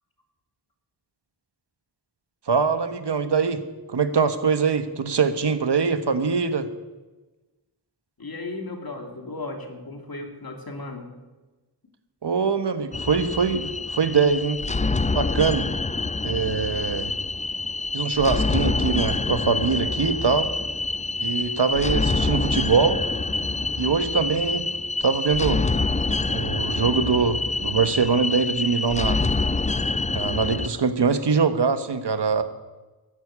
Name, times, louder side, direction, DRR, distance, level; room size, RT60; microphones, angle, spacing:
voice 1, 2.5-3.6 3.9-6.7 12.2-14.6 15.1-15.7 16.2-17.1 17.9-20.5 21.2-23.0 23.8-24.6 25.0-25.6 26.3-29.2 30.1-32.4, right 5 dB, 85° right, 10 dB, 1.3 m, -23 dB
voice 2, 8.2-11.1, left 2 dB, 60° left, 4 dB, 2.7 m, -35 dB
sound 1, 12.9-30.7, left 3 dB, 20° left, 0.5 m, -26 dB
13.5 x 11.0 x 8.7 m, 1.2 s
wide cardioid pair, 90°, 40 cm